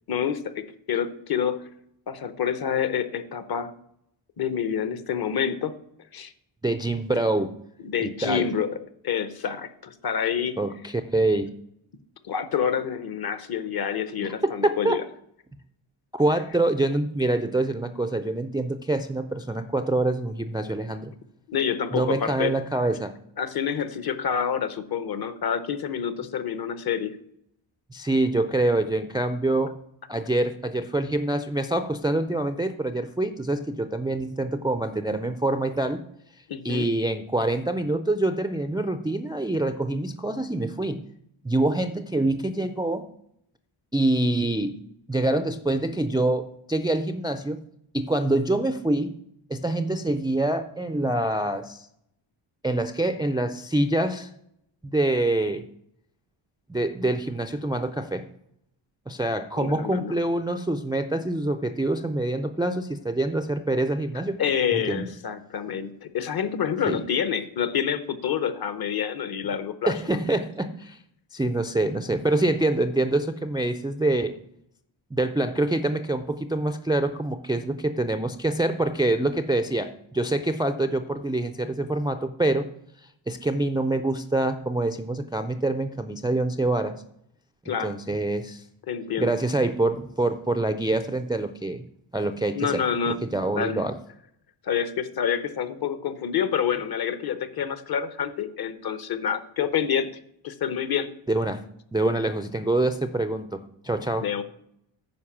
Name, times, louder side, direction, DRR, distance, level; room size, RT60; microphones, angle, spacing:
voice 1, 0.1-1.7 2.1-3.7 4.4-5.8 6.1-6.3 7.8-8.7 9.0-10.6 12.2-15.0 21.5-22.5 23.4-27.1 36.5-36.9 59.6-60.1 64.4-70.2 87.7-87.9 88.9-89.3 92.5-93.2 93.5-93.8 94.6-100.1 100.4-101.1 104.2-104.4, left 8 dB, 50° left, 13 dB, 0.9 m, -27 dB
voice 2, 6.6-7.5 8.0-8.5 10.6-11.5 14.2-15.0 16.1-21.1 21.9-23.1 27.9-29.7 30.1-36.0 36.6-41.0 41.4-43.0 43.9-44.8 45.1-47.6 47.9-49.1 49.5-51.9 52.6-54.3 54.8-55.6 56.7-58.2 59.1-64.4 64.7-65.0 66.9-67.0 69.9-71.0 71.3-74.3 75.1-82.7 83.3-86.9 87.7-88.6 89.2-91.8 92.1-94.0 101.3-101.6 101.9-104.3, right 2 dB, 10° right, 7 dB, 0.3 m, -25 dB
9.5 x 5.3 x 7.2 m, 0.73 s
wide cardioid pair, 160°, 47 cm